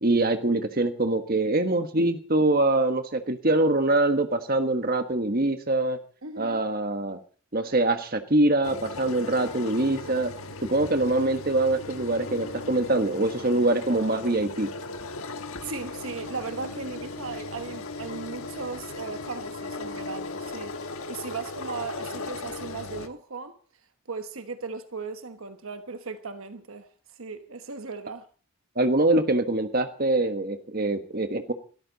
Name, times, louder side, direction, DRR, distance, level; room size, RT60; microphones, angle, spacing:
voice 1, 0.0-6.0 6.4-7.2 7.5-10.3 10.6-14.7 28.8-31.5, right 2 dB, 40° right, 1.4 m, -24 dB
voice 2, 6.2-6.7 15.6-20.8 21.1-23.6 24.1-28.3, right 4 dB, 70° right, 1.2 m, -37 dB
sound 1, 8.6-23.1, left 3 dB, 70° left, 1.4 m, -37 dB
22.0 x 13.0 x 4.1 m
head